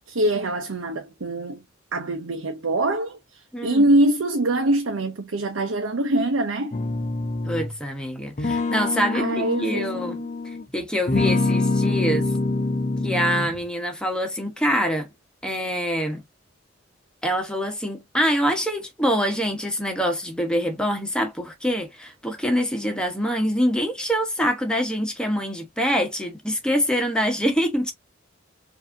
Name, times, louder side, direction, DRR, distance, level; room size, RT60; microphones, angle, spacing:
voice 1, 0.1-1.6 1.9-6.7 9.1-10.2, right 1 dB, 85° right, 0.8 m, -24 dB
voice 2, 3.5-3.8 7.4-10.2 10.7-12.3 13.0-15.1 15.4-16.2 17.2-27.9, equal, 5° left, 1.1 m, -25 dB
sound 1, 6.7-7.8 8.4-10.6 11.1-13.7, left 3 dB, 35° left, 0.7 m, -25 dB
4.9 x 2.8 x 2.6 m
head